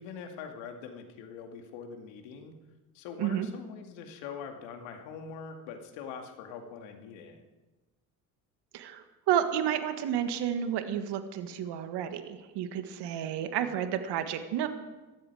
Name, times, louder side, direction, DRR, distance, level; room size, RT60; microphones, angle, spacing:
voice 1, 0.0-2.6 2.9-7.4, left 6 dB, 70° left, 4 dB, 2.3 m, -43 dB
voice 2, 8.7-14.7, right 9 dB, 60° right, 9 dB, 1.6 m, -31 dB
18.5 x 13.5 x 4.9 m, 1.2 s
hypercardioid pair, 60°, 46 cm